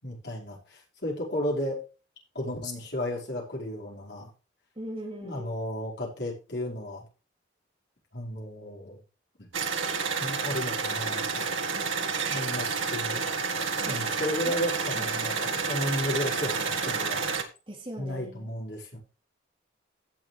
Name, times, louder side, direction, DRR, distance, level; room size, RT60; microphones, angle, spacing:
voice 1, 0.0-1.8 2.3-4.3 5.2-7.1 8.1-9.0 9.4-9.5 10.2-11.5 12.3-13.2 13.8-17.2 18.0-19.0, left 1 dB, 60° left, -3 dB, 5.2 m, -33 dB
voice 2, 4.7-5.5 11.7-12.3 13.9-14.1 14.4-14.6 14.9-15.7 17.7-18.5, equal, 30° right, 1 dB, 2.9 m, -41 dB
sound 1, 9.5-17.4, right 5 dB, 90° right, 1.8 m, -30 dB
16.5 x 6.3 x 3.4 m, 0.33 s
head